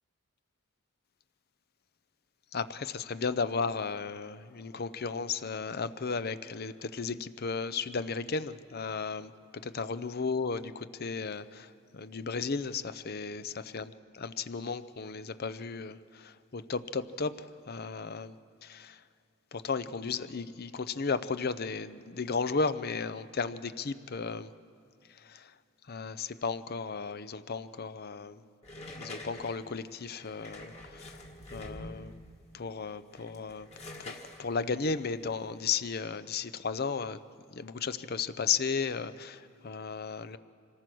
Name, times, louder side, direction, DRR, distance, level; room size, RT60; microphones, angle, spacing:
voice 1, 2.5-13.9 14.2-18.3 18.6-19.0 19.5-24.5 25.1-25.5 25.9-28.4 29.0-31.2 31.5-32.2 32.5-33.7 34.0-37.2 37.5-40.4, left 5 dB, 45° left, 13 dB, 0.6 m, -34 dB
sound 1, 28.6-32.3 33.0-36.0, left 1 dB, 30° left, 1.8 m, -46 dB
26.0 x 18.5 x 6.2 m, 2.5 s
head